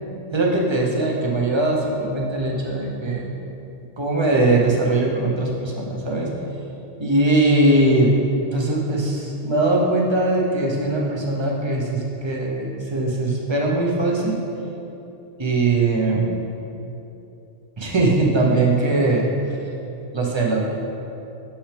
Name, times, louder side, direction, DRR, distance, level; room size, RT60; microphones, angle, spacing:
voice 1, 0.3-3.3 4.0-6.3 7.0-8.1 8.5-14.4 15.4-16.3 17.8-19.2 20.1-20.6, right 2 dB, 25° right, -2 dB, 0.8 m, -20 dB
7.3 x 5.8 x 3.4 m, 2.8 s
omnidirectional pair, 1.2 m